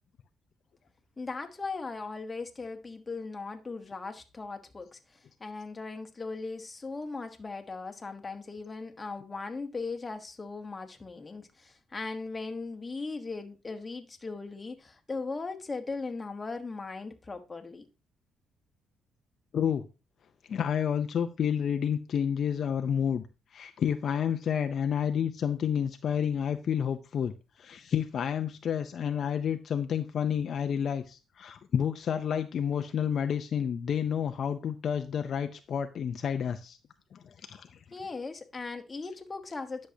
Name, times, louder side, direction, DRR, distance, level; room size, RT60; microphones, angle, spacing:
voice 1, 1.2-17.9 37.9-39.9, left 3 dB, 25° left, 1.2 m, -38 dB
voice 2, 19.5-19.9 20.5-23.2 23.5-36.8 37.1-37.8, left 8 dB, 60° left, 0.5 m, -30 dB
10.0 x 6.3 x 2.8 m
cardioid pair, 90°, 0 cm